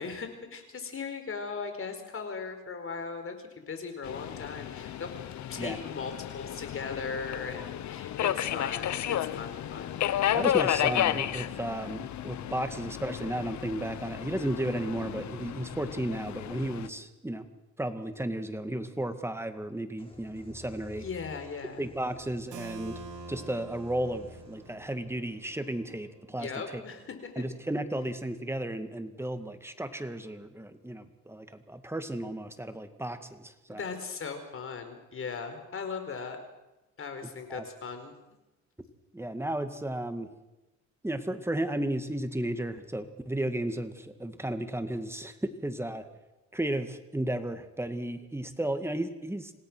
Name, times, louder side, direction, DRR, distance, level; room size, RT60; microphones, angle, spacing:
voice 1, 0.0-5.1 5.5-10.0 20.9-21.9 26.4-27.3 33.7-36.4 37.0-38.1, left 5 dB, 45° left, 7 dB, 4.6 m, -38 dB
Subway metro underground, 4.0-16.9, left 11 dB, 70° left, 1.1 m, -32 dB
voice 2, 10.3-17.5 17.8-21.1 21.8-23.0 23.3-26.8 27.4-33.8 37.5-37.7 39.1-40.3 41.0-46.0 46.5-49.5, right 1 dB, 10° right, 8 dB, 2.0 m, -34 dB
sound 1, 20.0-27.5, left 2 dB, 20° left, 5.1 m, -52 dB
Keyboard (musical), 22.5-28.1, right 6 dB, 80° right, 2.4 m, -49 dB
27.0 x 18.0 x 6.3 m, 1.0 s
cardioid pair, 90°, 30 cm